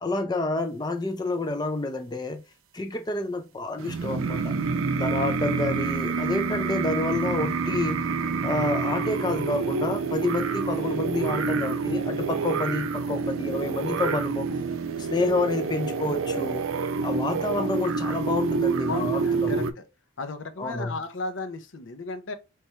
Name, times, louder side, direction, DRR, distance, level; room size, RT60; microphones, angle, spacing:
voice 1, 0.0-2.4 2.7-4.5 5.0-8.0 8.4-14.6 15.0-16.6 17.0-19.7 20.6-21.0, left 2 dB, 20° left, 0.4 m, -29 dB
sound 1, 3.8-19.7, right 4 dB, 80° right, 0.5 m, -27 dB
voice 2, 18.9-19.6 20.2-22.3, left 3 dB, 65° left, 0.7 m, -34 dB
4.3 x 3.5 x 3.2 m
head